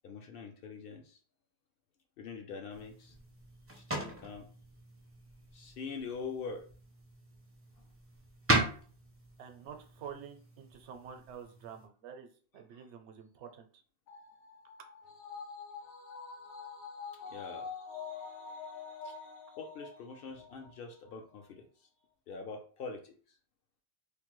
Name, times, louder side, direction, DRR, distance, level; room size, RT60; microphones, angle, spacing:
voice 1, 0.0-1.2 2.2-3.2 3.7-4.5 5.5-6.7 12.7-12.8 17.1-17.7 18.1-21.9 22.3-23.1, left 4 dB, 65° left, 4 dB, 0.7 m, -44 dB
sound 1, 2.7-11.9, right 2 dB, 25° right, 0.3 m, -38 dB
voice 2, 9.4-13.7, right 7 dB, 85° right, 6 dB, 0.9 m, -48 dB
sound 2, 14.1-20.7 21.1-21.2, left 5 dB, 90° left, 1.0 m, -46 dB
3.2 x 2.1 x 3.0 m, 0.41 s
omnidirectional pair, 1.1 m